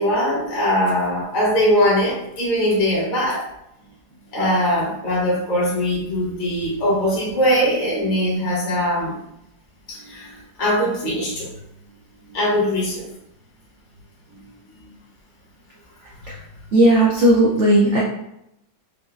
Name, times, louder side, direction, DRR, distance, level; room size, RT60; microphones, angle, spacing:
voice 1, 0.0-3.4 4.3-9.1 9.9-10.3 10.6-11.5 12.3-13.1, equal, 35° left, -6 dB, 0.8 m, -21 dB
voice 2, 16.7-18.0, right 1 dB, 90° right, -4 dB, 0.6 m, -15 dB
4.7 x 2.0 x 2.4 m, 0.80 s
omnidirectional pair, 2.0 m